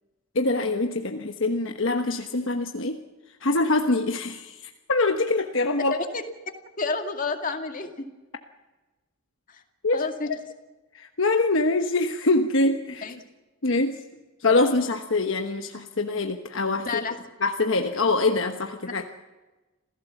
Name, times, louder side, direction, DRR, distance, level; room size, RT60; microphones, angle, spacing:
voice 1, 0.3-3.0 3.4-5.9 9.8-10.4 10.9-13.1 13.6-14.0 14.4-17.0 17.4-19.1, left 2 dB, 60° left, 5 dB, 1.2 m, -24 dB
voice 2, 6.8-8.1 9.5-9.6 9.9-10.3 13.0-13.2 16.8-17.2, left 4 dB, 40° left, 5 dB, 2.2 m, -30 dB
27.0 x 16.0 x 7.1 m, 1.2 s
head